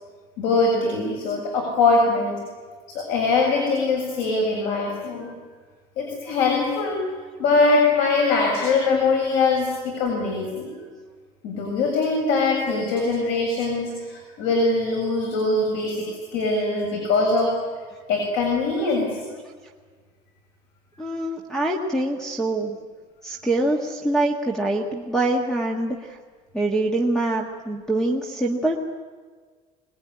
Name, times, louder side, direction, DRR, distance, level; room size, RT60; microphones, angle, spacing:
voice 1, 0.4-2.4 2.9-5.3 6.0-7.1 7.4-10.7 11.4-17.5 18.1-19.2, left 3 dB, 70° left, 0 dB, 7.2 m, -22 dB
voice 2, 21.0-22.8 23.2-26.2 26.5-28.8, right 2 dB, 5° left, 3 dB, 1.7 m, -24 dB
25.5 x 21.0 x 9.8 m, 1.5 s
cardioid pair, 175°, 15 cm